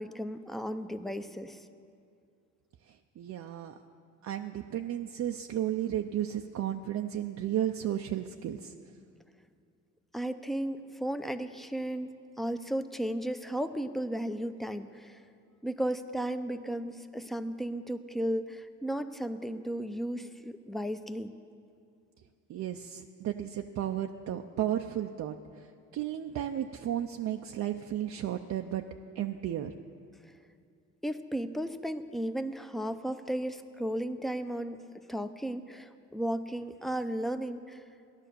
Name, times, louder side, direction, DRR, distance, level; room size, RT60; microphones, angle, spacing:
voice 1, 0.0-1.6 10.1-12.1 12.4-15.2 15.6-21.3 31.0-37.8, right 1 dB, ahead, 9 dB, 0.7 m, -34 dB
voice 2, 2.9-3.7 4.2-8.7 22.5-28.8 29.2-29.7, right 11 dB, 65° right, 3 dB, 0.6 m, -34 dB
16.0 x 11.0 x 6.9 m, 2.4 s
cardioid pair, 90°, 30 cm